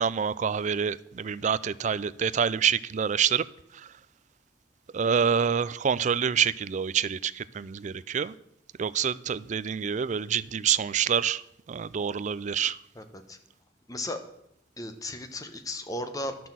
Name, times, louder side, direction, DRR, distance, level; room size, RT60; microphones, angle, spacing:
voice 1, 0.0-3.4 4.9-8.3 8.8-11.4 11.7-12.8, right 7 dB, 40° right, 18 dB, 0.3 m, -27 dB
voice 2, 12.9-13.4 13.9-14.2 14.8-16.4, left 1 dB, 20° left, 7 dB, 1.0 m, -35 dB
11.0 x 6.0 x 7.4 m, 0.79 s
head